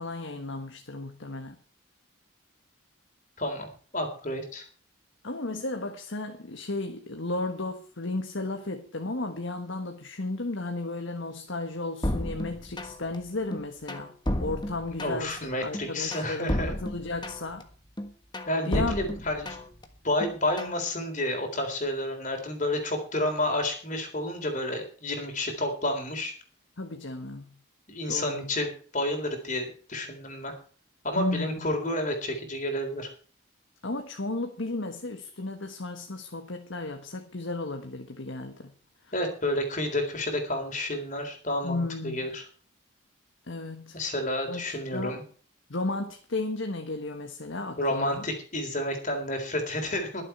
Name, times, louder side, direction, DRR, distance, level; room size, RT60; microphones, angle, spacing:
voice 1, 0.0-1.6 5.2-14.1 14.4-17.7 18.6-19.0 26.8-27.5 28.1-28.5 31.2-31.7 33.8-38.7 39.0-39.1 41.6-42.3 43.4-44.0 44.5-45.2 45.7-48.2, left 2 dB, 65° left, 5 dB, 1.5 m, -34 dB
voice 2, 3.9-4.6 15.0-16.7 18.5-19.6 20.0-26.3 27.9-30.5 31.0-33.1 39.1-42.5 43.9-45.2 47.8-50.2, left 1 dB, 35° left, 4 dB, 3.7 m, -30 dB
sound 1, 12.0-13.2 13.5-15.4 15.7-17.6 18.0-19.8 20.2-20.8, left 1 dB, 20° left, 1.4 m, -32 dB
22.0 x 7.5 x 4.5 m, 0.43 s
head